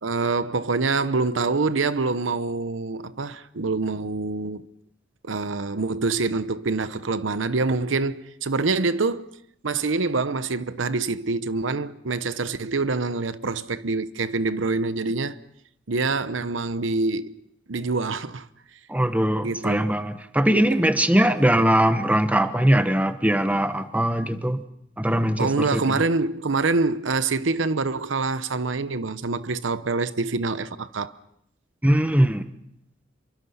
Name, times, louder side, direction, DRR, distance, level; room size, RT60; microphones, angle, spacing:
voice 1, 0.0-4.7 5.2-9.3 9.6-15.4 15.9-17.4 17.7-18.5 19.4-19.9 20.5-20.7 25.4-31.1, right 3 dB, 80° right, 0.9 m, -25 dB
voice 2, 18.9-24.6 25.0-26.0 31.8-32.5, right 1 dB, 10° right, 1.0 m, -21 dB
27.0 x 24.0 x 5.6 m
head